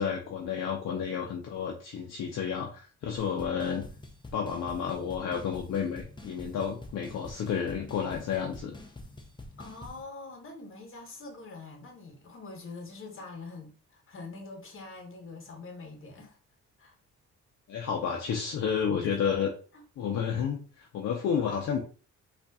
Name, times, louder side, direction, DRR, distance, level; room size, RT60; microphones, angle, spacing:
voice 1, 0.0-3.8 4.3-8.8 17.7-19.5 20.0-21.8, left 7 dB, 60° left, 0.7 m, -31 dB
sound 1, 3.2-10.0, left 2 dB, 15° left, 0.6 m, -46 dB
voice 2, 9.6-16.4 16.8-16.9 19.2-19.3, left 3 dB, 45° left, 1.2 m, -44 dB
3.9 x 2.5 x 2.3 m
cardioid pair, 90°, 30 cm